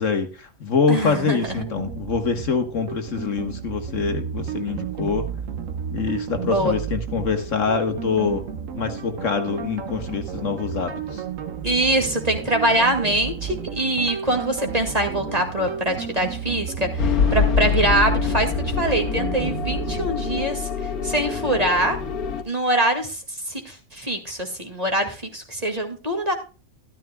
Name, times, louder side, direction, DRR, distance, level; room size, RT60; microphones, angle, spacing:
voice 1, 0.0-5.3 5.9-8.4 8.7-11.2, left 5 dB, 60° left, 7 dB, 1.5 m, -25 dB
voice 2, 0.9-1.5 6.5-6.8 11.6-22.0 22.5-26.3, right 1 dB, 25° right, 4 dB, 2.0 m, -24 dB
sound 1, 1.4-20.5, right 7 dB, 65° right, 1.3 m, -32 dB
sound 2, 17.0-22.4, left 6 dB, 85° left, 1.6 m, -25 dB
13.0 x 12.5 x 2.2 m, 0.34 s
omnidirectional pair, 1.5 m